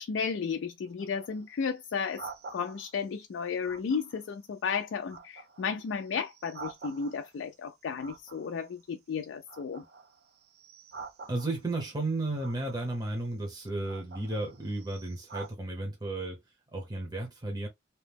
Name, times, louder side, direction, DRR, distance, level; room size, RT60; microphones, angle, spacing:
voice 1, 0.0-2.2 2.5-9.8, left 6 dB, 75° left, 0.3 m, -33 dB
sound 1, 0.9-3.1 3.6-4.4 4.8-7.5 8.0-9.1 9.4-11.8 12.4-13.1 13.7-15.5, right 4 dB, 50° right, 0.4 m, -48 dB
voice 2, 11.3-16.4 16.7-17.7, right 2 dB, 20° right, 0.7 m, -33 dB
2.8 x 2.0 x 3.3 m
head